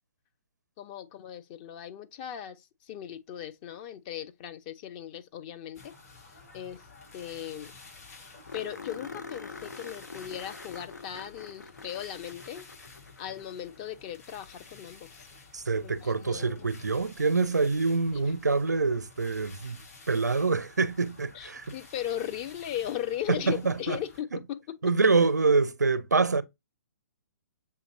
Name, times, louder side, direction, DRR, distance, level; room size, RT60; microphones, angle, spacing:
voice 1, 0.8-5.9 6.5-6.8 7.1-7.7 8.5-12.7 13.2-15.1 15.8-16.6 18.1-18.2 21.3-24.6, left 10 dB, 30° left, 0.5 m, -37 dB
sound 1, 5.8-24.2, left 4 dB, 60° left, 3.4 m, -52 dB
sound 2, 7.1-7.2 7.4-7.5 7.8-7.9 8.5-13.9 16.2-16.3 19.2-19.3, left 4 dB, 85° left, 0.5 m, -45 dB
voice 2, 15.5-19.8 20.1-21.7 23.3-24.0 24.8-26.4, right 4 dB, 80° right, 0.5 m, -25 dB
6.9 x 2.8 x 2.6 m
figure-of-eight pair, 125°, 9 cm